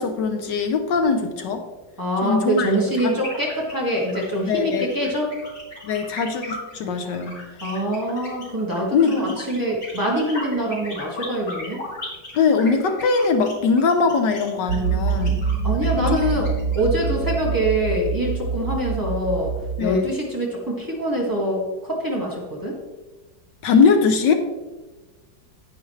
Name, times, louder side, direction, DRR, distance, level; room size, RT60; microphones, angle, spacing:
voice 1, 0.0-1.7 2.2-2.7 3.0-3.2 4.5-5.1 5.8-7.4 8.9-9.4 12.3-15.4 16.0-16.2 19.8-20.1 23.6-24.3, left 5 dB, 70° left, 5 dB, 1.4 m, -21 dB
voice 2, 2.0-5.3 7.6-11.8 15.6-22.8, equal, 10° right, -4 dB, 1.9 m, -24 dB
sound 1, 2.9-17.3, left 1 dB, 50° left, 3.8 m, -37 dB
sound 2, 14.7-19.8, right 6 dB, 65° right, 1.2 m, -25 dB
10.5 x 9.7 x 3.2 m, 1.2 s
omnidirectional pair, 2.0 m